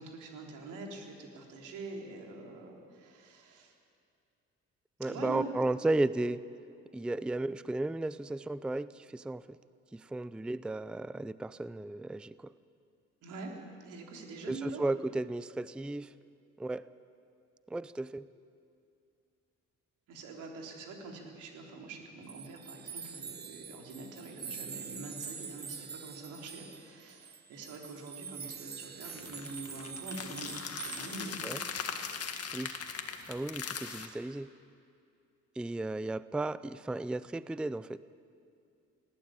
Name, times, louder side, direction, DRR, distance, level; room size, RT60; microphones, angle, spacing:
voice 1, 0.0-3.7 5.0-5.5 13.2-14.8 20.1-31.4, right 3 dB, 85° right, 1 dB, 3.7 m, -45 dB
voice 2, 5.0-6.4 6.9-9.6 9.9-12.5 14.5-16.1 16.6-16.9 17.7-18.2 31.4-31.6 32.5-32.8 33.3-34.5 35.6-38.0, right 2 dB, 5° right, 16 dB, 0.4 m, -34 dB
sound 1, 22.3-31.7, right 6 dB, 35° right, 0.8 m, -45 dB
sound 2, 29.1-34.1, left 6 dB, 55° left, 1.9 m, -40 dB
20.0 x 15.5 x 8.9 m, 2.4 s
cardioid pair, 90°, 30 cm